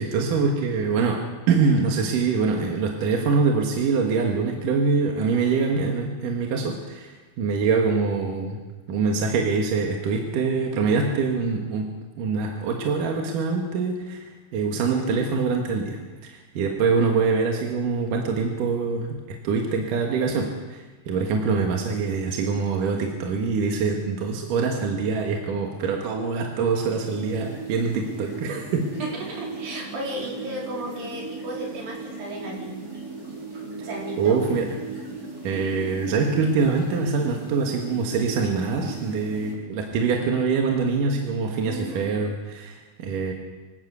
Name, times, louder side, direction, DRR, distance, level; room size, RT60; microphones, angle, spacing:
voice 1, 0.0-8.6 8.9-28.9 34.2-34.8 35.4-43.3, right 4 dB, 70° right, 2 dB, 3.1 m, -24 dB
sound 1, 27.0-39.5, right 4 dB, 25° right, 4.1 m, -37 dB
voice 2, 29.0-32.8 33.8-34.4 41.6-42.1, right 1 dB, 85° right, -2 dB, 6.1 m, -34 dB
24.5 x 13.0 x 8.2 m, 1.3 s
omnidirectional pair, 4.0 m